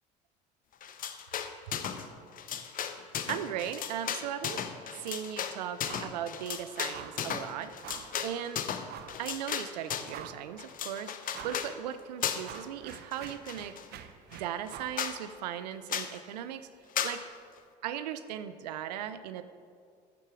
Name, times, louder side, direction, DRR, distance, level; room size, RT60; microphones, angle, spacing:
sound 1, 0.8-2.1 2.3-10.2 10.6-11.7 12.2-12.6 12.9-13.9 14.3-14.4 14.7-14.8 15.0-15.2 15.9-16.2 17.0-17.2, left 8 dB, 40° left, 0.8 m, -35 dB
voice 1, 3.3-4.6 4.9-7.7 8.2-8.6 9.2-13.8 14.3-16.7 17.0-17.3 17.8-19.4, right 10 dB, 75° right, 11 dB, 0.5 m, -37 dB
sound 2, 5.8-6.2 6.5-6.6 6.9-7.3 7.8-8.2 8.9-9.2 9.7-9.8 10.1-10.6 11.3-11.7 12.0-15.0, right 9 dB, 50° right, 0.8 m, -46 dB
14.5 x 6.6 x 4.8 m, 2.3 s
hypercardioid pair, 70°, 21 cm